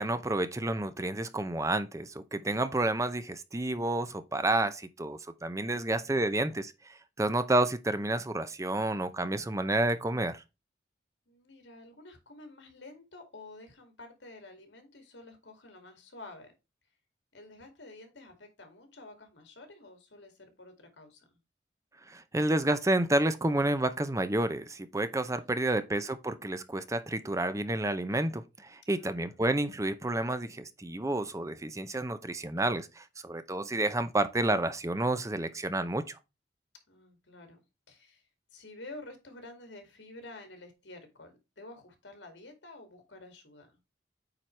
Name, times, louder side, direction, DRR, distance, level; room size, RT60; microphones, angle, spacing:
voice 1, 0.0-6.7 7.2-10.4 22.1-36.2, right 2 dB, 15° right, 0.6 m, -30 dB
voice 2, 5.7-6.2 11.3-16.5 17.3-21.3 28.9-29.4 35.5-35.9 36.9-37.6 37.9-38.2 38.5-43.8, left 2 dB, 80° left, 2.5 m, -50 dB
8.8 x 4.6 x 3.3 m
head